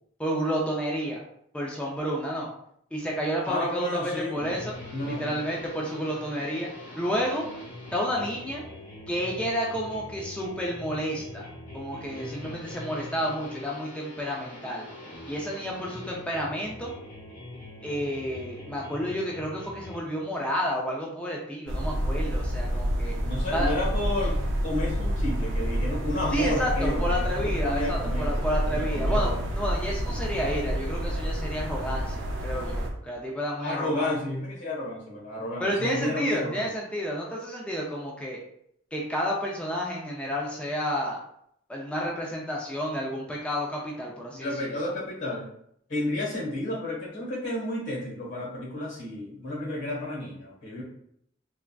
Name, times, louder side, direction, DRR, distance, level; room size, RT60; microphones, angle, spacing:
voice 1, 0.2-1.2 1.5-2.5 2.9-4.7 5.1-6.7 7.0-7.4 7.9-8.6 9.1-11.4 11.7-14.9 15.3-16.9 17.8-23.1 23.5-23.7 26.3-34.1 35.6-38.4 38.9-41.2 41.7-44.5, equal, 5° left, -3 dB, 0.4 m, -30 dB
voice 2, 3.4-4.5 4.9-5.2 23.2-28.3 28.7-29.4 33.6-36.7 44.3-45.5 45.9-50.8, left 1 dB, 70° left, -3 dB, 1.2 m, -31 dB
sound 1, 4.4-20.0, left 1 dB, 45° left, 0.9 m, -42 dB
sound 2, 21.7-32.9, equal, 85° right, 0.6 m, -28 dB
3.3 x 2.4 x 2.2 m, 0.71 s
head